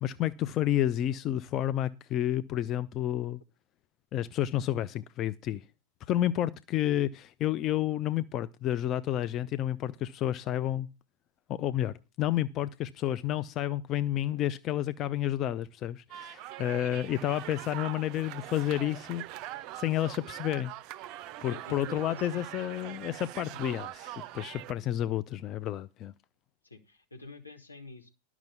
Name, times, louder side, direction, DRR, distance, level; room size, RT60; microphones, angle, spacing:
voice 1, 0.0-3.4 4.1-5.6 6.1-10.9 11.5-20.7 21.4-26.1, left 12 dB, 35° left, 0.5 m, -30 dB
sound 1, 16.1-24.7, right 14 dB, 40° right, 0.5 m, -42 dB
voice 2, 21.5-22.4 23.5-23.6 26.6-28.1, left 3 dB, 80° left, 1.7 m, -47 dB
12.0 x 6.0 x 6.9 m
figure-of-eight pair, 90°, 0 cm